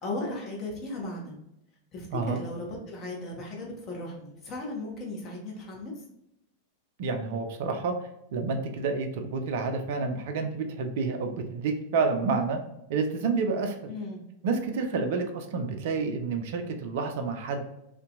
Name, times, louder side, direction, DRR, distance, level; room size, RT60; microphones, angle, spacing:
voice 1, 0.0-1.4 1.9-6.0 13.9-14.2, left 2 dB, 30° left, -2 dB, 0.8 m, -36 dB
voice 2, 7.0-8.0 8.3-12.6 12.9-13.9 14.4-17.6, right 4 dB, 50° right, 5 dB, 0.4 m, -29 dB
2.6 x 2.1 x 2.4 m, 0.83 s
figure-of-eight pair, 90°, 0 cm